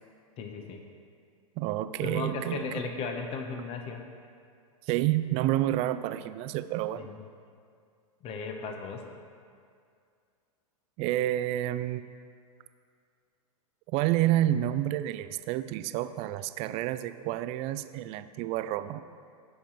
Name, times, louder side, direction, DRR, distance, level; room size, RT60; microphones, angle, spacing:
voice 1, 0.4-0.8 2.0-4.0 7.0-7.2 8.2-9.0, left 4 dB, 30° left, 5 dB, 0.8 m, -36 dB
voice 2, 1.6-2.9 4.8-7.1 11.0-12.1 13.9-19.0, right 14 dB, 35° right, 13 dB, 0.3 m, -29 dB
14.5 x 5.7 x 3.0 m, 2.3 s
hypercardioid pair, 110°, 19 cm